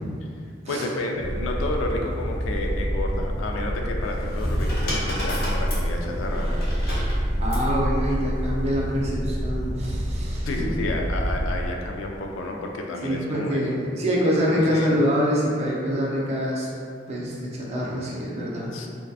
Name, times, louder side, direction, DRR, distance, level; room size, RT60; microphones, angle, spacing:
voice 1, 0.7-6.6 10.5-13.6 14.5-15.0 18.7-18.9, left 2 dB, 90° left, 1 dB, 0.3 m, -31 dB
sound 1, 1.1-11.7, equal, 20° left, 0.6 m, -27 dB
sound 2, 4.0-7.7 8.7-9.1, equal, 55° left, 0.9 m, -32 dB
voice 2, 7.4-10.5 13.0-16.7 17.1-18.7, equal, 35° right, -5 dB, 0.4 m, -25 dB
2.6 x 2.2 x 2.3 m, 2.3 s
head